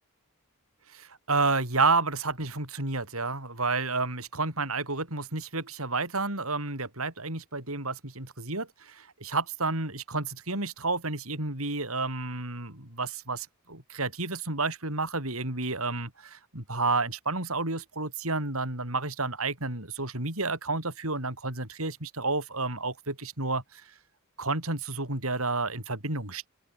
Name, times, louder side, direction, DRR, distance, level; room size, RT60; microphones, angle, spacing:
voice 1, 0.9-23.8 24.4-26.5, right 3 dB, 75° right, 7.8 m, -30 dB
open air
head